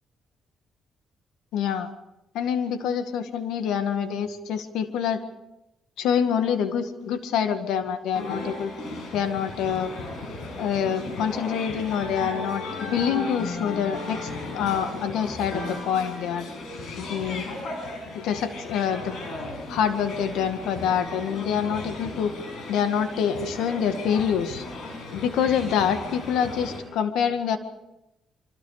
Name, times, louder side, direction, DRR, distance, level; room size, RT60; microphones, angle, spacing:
voice 1, 1.5-1.9 2.3-5.2 6.0-8.7 9.1-9.9 10.6-12.6 12.9-14.3 14.5-16.5 17.0-17.5 18.1-19.1 19.7-22.3 22.7-24.6 25.1-27.6, left 8 dB, 85° left, 8 dB, 1.9 m, -26 dB
sound 1, 8.1-26.8, left 2 dB, 70° left, 6.9 m, -36 dB
27.0 x 24.5 x 4.9 m, 0.93 s
cardioid pair, 90°, 0 cm